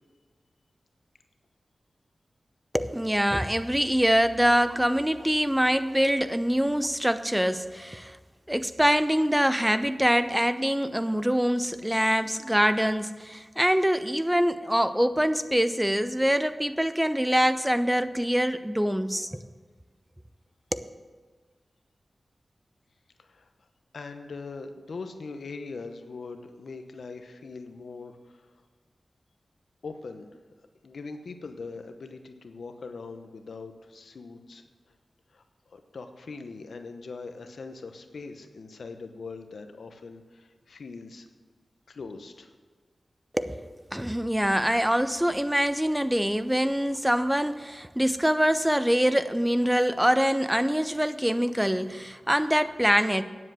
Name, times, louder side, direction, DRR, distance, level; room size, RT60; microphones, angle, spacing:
voice 1, 2.7-8.2 8.5-19.4 20.7-20.9 43.3-53.2, equal, 10° right, 0.6 m, -24 dB
voice 2, 23.9-28.5 29.8-30.3 30.8-34.6 35.3-41.3 41.9-42.5, left 4 dB, 80° left, 0.9 m, -41 dB
9.8 x 7.8 x 7.6 m
cardioid pair, 40°, 0 cm